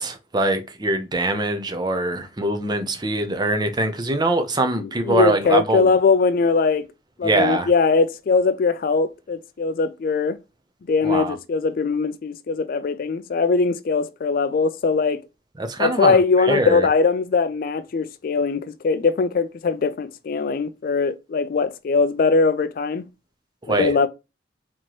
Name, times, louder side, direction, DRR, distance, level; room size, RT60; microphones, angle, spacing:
voice 1, 0.0-6.0 7.2-7.7 11.0-11.3 15.6-16.9 23.7-24.0, right 2 dB, 25° right, 0.6 m, -23 dB
voice 2, 4.8-6.9 7.2-10.4 10.9-15.2 15.8-23.1 23.7-24.1, left 4 dB, 50° left, 0.3 m, -21 dB
4.3 x 2.9 x 3.0 m
head